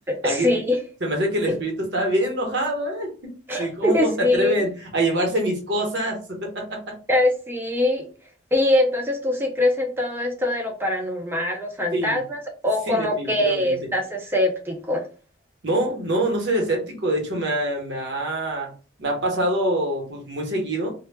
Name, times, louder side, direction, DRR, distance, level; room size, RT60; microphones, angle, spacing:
voice 1, 0.1-0.8 1.5-1.6 3.5-4.5 7.1-8.1 8.5-15.1, left 1 dB, 10° right, 1 dB, 0.3 m, -23 dB
voice 2, 1.0-3.3 3.6-6.9 11.9-12.2 12.9-13.8 15.6-18.7 19.0-20.9, right 1 dB, 60° right, 1 dB, 0.8 m, -25 dB
2.1 x 2.0 x 3.2 m, 0.36 s
head